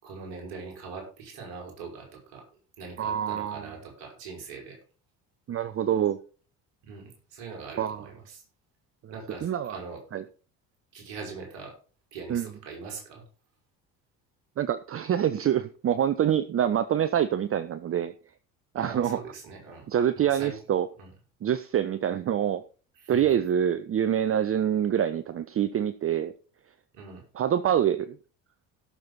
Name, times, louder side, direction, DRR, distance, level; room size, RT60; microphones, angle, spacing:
voice 1, 0.0-2.4 2.8-4.8 6.8-8.4 9.1-10.0 10.9-11.7 12.1-13.2 18.7-19.9 20.1-20.5 21.0-21.1 23.0-23.3 26.9-27.2, right 4 dB, 60° right, 0 dB, 5.7 m, -42 dB
voice 2, 3.0-3.6 5.5-6.2 7.8-8.0 9.0-9.1 9.4-9.8 10.1-10.2 12.3-12.5 14.6-18.1 18.7-19.2 19.9-20.9 21.4-22.6 23.1-26.3 27.4-28.2, right 9 dB, 30° right, 13 dB, 0.7 m, -26 dB
17.0 x 6.8 x 4.1 m, 0.39 s
figure-of-eight pair, 55°, 46 cm